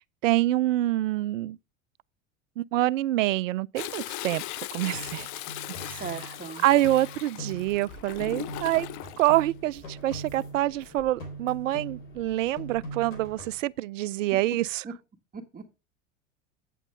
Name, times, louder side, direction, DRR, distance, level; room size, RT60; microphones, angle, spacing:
voice 1, 0.2-1.6 2.6-5.3 5.8-6.0 6.6-8.9 9.2-14.8, right 15 dB, 80° right, 0.5 m, -26 dB
Toilet flush, 3.8-9.3 10.8-11.3 11.7-11.8, left 16 dB, 50° left, 0.7 m, -39 dB
sound 1, 4.9-7.9 8.2-10.9 11.2-12.3 12.6-13.6, right 2 dB, 85° left, 3.6 m, -42 dB
voice 2, 5.9-6.6 14.8-14.9 15.3-15.7, right 5 dB, 20° right, 1.7 m, -38 dB
sound 2, 7.6-13.9, left 3 dB, 30° left, 3.2 m, -53 dB
9.2 x 7.2 x 3.4 m
hypercardioid pair, 90°, 38 cm